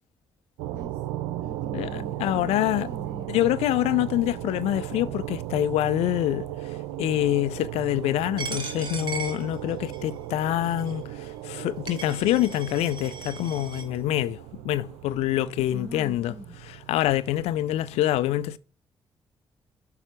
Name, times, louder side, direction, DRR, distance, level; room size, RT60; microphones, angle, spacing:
sound 1, 0.6-18.0, right 14 dB, 90° right, 0.5 m, -37 dB
voice 1, 0.7-1.2 1.4-3.3 15.7-16.6, equal, 10° right, 2.3 m, -42 dB
voice 2, 1.7-2.9 3.3-6.5 7.0-16.3 16.7-18.6, left 13 dB, 80° left, 0.4 m, -26 dB
Coin (dropping), 8.4-10.1 10.8-10.9 11.6-11.7 11.9-13.8, right 5 dB, 45° right, 3.3 m, -37 dB
6.9 x 5.5 x 4.6 m
hypercardioid pair, 45°, 10 cm